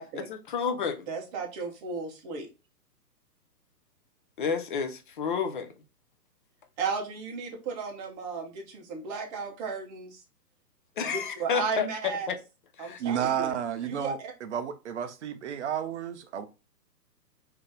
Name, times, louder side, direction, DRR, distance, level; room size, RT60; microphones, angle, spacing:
voice 1, 0.2-1.1 4.4-5.7 11.0-11.9 12.3-12.4 12.8-13.0, left 6 dB, 35° left, 0.4 m, -30 dB
voice 2, 1.1-2.5 6.8-10.2 11.0-12.3 12.8-13.5 13.9-14.3, right 5 dB, 25° right, 0.9 m, -34 dB
voice 3, 13.0-16.4, right 9 dB, 45° right, 0.5 m, -31 dB
3.7 x 2.8 x 3.6 m
hypercardioid pair, 140°, 49 cm